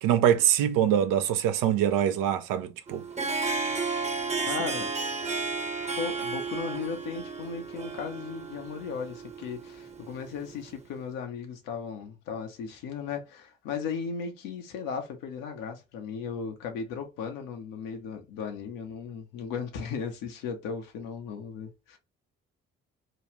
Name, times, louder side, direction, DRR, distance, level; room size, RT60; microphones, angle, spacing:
voice 1, 0.0-3.0, right 10 dB, 75° right, 0.6 m, -24 dB
Harp, 2.9-10.6, right 4 dB, 20° right, 0.8 m, -33 dB
voice 2, 4.5-4.9 6.0-22.0, left 6 dB, 75° left, 0.9 m, -36 dB
3.1 x 2.4 x 3.0 m
hypercardioid pair, 45°, 33 cm